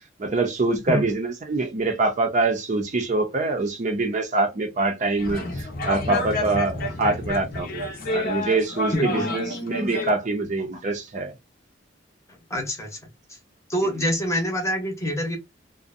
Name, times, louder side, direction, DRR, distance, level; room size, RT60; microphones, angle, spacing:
voice 1, 0.2-11.3, right 2 dB, 40° right, 0.5 m, -25 dB
sound 1, 5.2-10.1, left 1 dB, 50° left, 0.7 m, -29 dB
voice 2, 8.9-9.3 12.3-13.0 13.7-15.4, equal, 15° left, 0.8 m, -26 dB
2.5 x 2.0 x 2.4 m
head